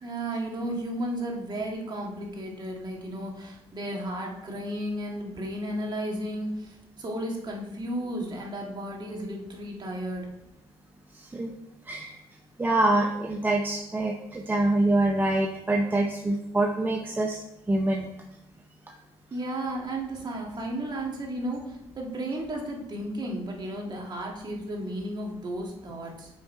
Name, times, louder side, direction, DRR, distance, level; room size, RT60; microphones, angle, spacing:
voice 1, 0.0-10.3 19.3-26.3, right 1 dB, 35° right, 0 dB, 1.8 m, -33 dB
voice 2, 11.1-11.5 11.9-12.2 12.6-17.4 17.7-18.1 18.9-19.0, right 2 dB, 15° right, 2 dB, 0.7 m, -25 dB
6.4 x 5.4 x 4.2 m, 0.87 s
cardioid pair, 95°, 12 cm